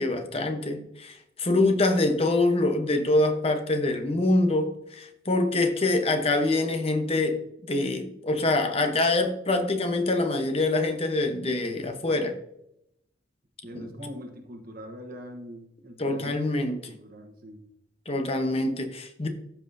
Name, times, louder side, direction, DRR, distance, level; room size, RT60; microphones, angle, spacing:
voice 1, 0.0-7.4 7.7-12.3 13.7-13.9 16.0-16.8 18.1-19.3, left 2 dB, 35° left, 1.0 m, -25 dB
voice 2, 13.6-16.4 16.7-17.6, equal, 55° right, 1.1 m, -42 dB
13.5 x 5.7 x 2.7 m
head